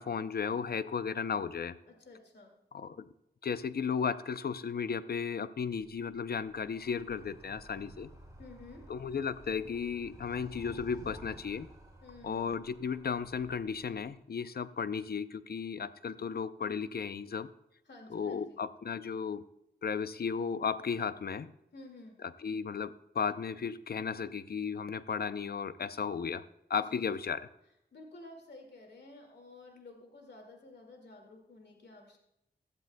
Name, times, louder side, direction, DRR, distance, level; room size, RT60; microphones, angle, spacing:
voice 1, 0.0-1.8 2.7-3.1 3.4-8.1 8.9-11.7 12.2-17.5 18.1-19.4 19.8-21.5 22.4-26.4 26.7-27.5, left 6 dB, 65° left, 13 dB, 0.6 m, -35 dB
voice 2, 1.9-2.5 8.4-8.9 12.0-12.5 17.9-18.6 21.7-22.2 26.8-27.3 27.9-32.2, left 2 dB, 80° left, 2 dB, 2.1 m, -52 dB
Animal, 5.6-14.2, right 1 dB, 20° right, 2.8 m, -53 dB
16.5 x 12.0 x 2.2 m, 0.84 s
cardioid pair, 60°, 17 cm